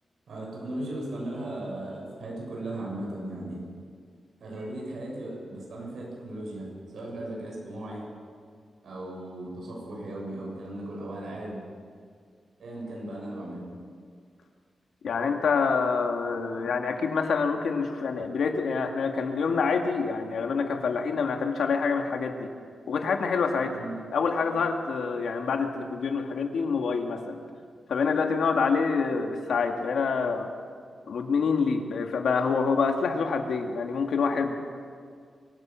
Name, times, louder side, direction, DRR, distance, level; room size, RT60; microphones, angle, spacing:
voice 1, 0.3-3.6 4.4-8.1 8.8-11.6 12.6-13.7 23.7-24.0, right 1 dB, 70° right, -2 dB, 7.1 m, -37 dB
voice 2, 15.0-22.5 22.9-23.8 24.1-27.4 27.9-30.5 31.1-34.6, left 5 dB, 85° left, 4 dB, 2.1 m, -26 dB
24.5 x 15.5 x 7.5 m, 2.1 s
wide cardioid pair, 175°, 0 cm